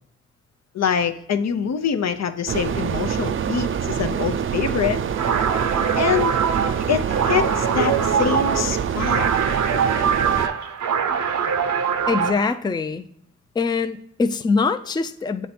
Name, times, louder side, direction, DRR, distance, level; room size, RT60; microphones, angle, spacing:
voice 1, 0.7-5.0 6.0-6.4 6.9-9.4, left 7 dB, 65° left, 8 dB, 0.6 m, -25 dB
sound 1, 2.5-10.5, right 8 dB, 45° right, 0.4 m, -25 dB
sound 2, 5.1-12.5, right 7 dB, 80° right, 0.7 m, -23 dB
voice 2, 12.1-13.1 13.6-15.5, left 4 dB, 15° left, 9 dB, 0.4 m, -23 dB
7.2 x 3.3 x 4.2 m, 0.72 s
cardioid pair, 60°, 29 cm